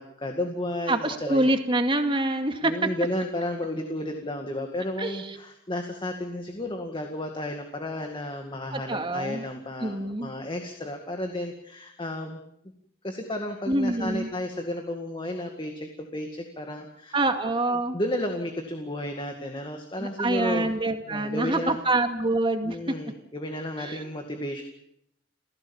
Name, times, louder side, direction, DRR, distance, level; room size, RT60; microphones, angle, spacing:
voice 1, 0.0-1.5 2.6-12.4 13.0-17.2 17.9-20.7 21.1-21.8 22.6-24.6, left 1 dB, 25° left, 4 dB, 2.1 m, -32 dB
voice 2, 0.9-2.7 5.0-5.4 8.7-9.4 9.8-10.3 13.7-14.3 17.1-18.0 20.0-22.8 23.8-24.0, right 2 dB, 30° right, 6 dB, 2.4 m, -26 dB
29.0 x 16.0 x 7.2 m, 0.75 s
head